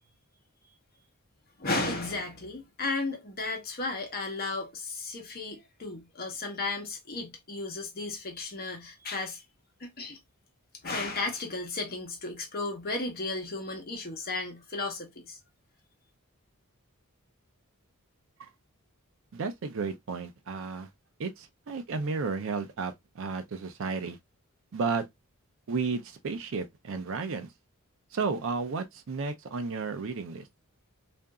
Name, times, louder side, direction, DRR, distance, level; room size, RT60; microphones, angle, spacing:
voice 1, 1.6-9.4 9.8-10.2 10.8-15.4, left 3 dB, 45° left, 0.9 m, -34 dB
voice 2, 19.3-20.9 21.2-24.2 24.7-25.0 25.7-27.5 28.1-30.5, right 4 dB, 60° right, 0.5 m, -33 dB
2.8 x 2.5 x 2.2 m
head